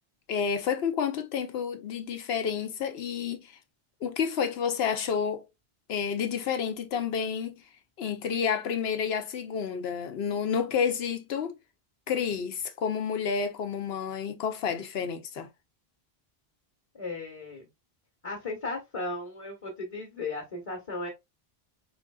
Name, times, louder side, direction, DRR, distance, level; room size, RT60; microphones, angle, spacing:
voice 1, 0.3-3.6 4.0-5.5 5.9-7.6 8.0-11.6 12.1-15.5, left 7 dB, 80° left, 0.9 m, -30 dB
voice 2, 16.9-17.7 18.2-21.1, left 2 dB, 35° left, 1.1 m, -36 dB
3.7 x 3.3 x 2.3 m
omnidirectional pair, 1.0 m